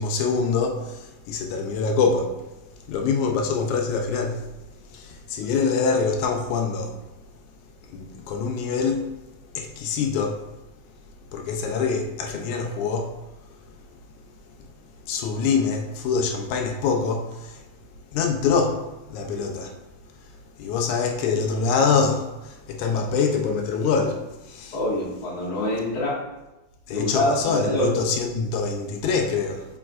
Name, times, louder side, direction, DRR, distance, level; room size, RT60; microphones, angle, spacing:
voice 1, 0.0-2.4 2.9-4.4 4.9-7.0 7.9-9.1 9.6-10.4 11.3-13.1 15.1-17.6 18.1-19.7 20.6-24.8 26.9-29.7, left 5 dB, 80° left, 2.1 m, -25 dB
voice 2, 24.7-26.2 26.9-27.9, left 1 dB, 35° left, 2.6 m, -25 dB
7.5 x 5.2 x 2.5 m
omnidirectional pair, 3.4 m